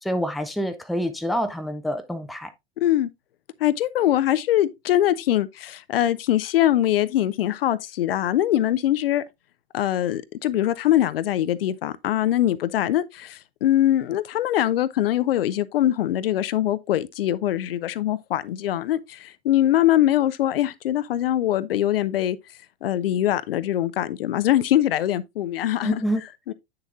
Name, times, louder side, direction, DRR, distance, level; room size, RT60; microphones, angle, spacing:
voice 1, 0.0-2.5 25.8-26.2, equal, ahead, 0.6 m, -27 dB
voice 2, 2.8-3.1 3.6-9.2 9.7-22.4 22.8-26.0 26.5-26.6, left 12 dB, 60° left, 0.6 m, -22 dB
8.1 x 6.6 x 2.4 m
figure-of-eight pair, 95°, 32 cm